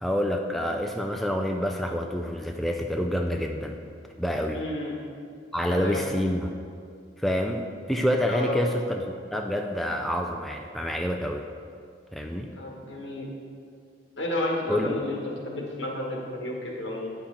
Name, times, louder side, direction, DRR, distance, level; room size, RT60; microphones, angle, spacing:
voice 1, 0.0-3.8 4.2-4.6 5.5-6.5 7.2-9.0 9.3-11.4 12.1-12.5 14.7-15.0, equal, ahead, 2 dB, 0.3 m, -27 dB
voice 2, 4.5-5.0 5.7-6.1 8.3-8.6 12.5-13.3 14.2-17.1, left 1 dB, 75° left, -1 dB, 1.5 m, -31 dB
9.2 x 5.6 x 4.3 m, 2.2 s
head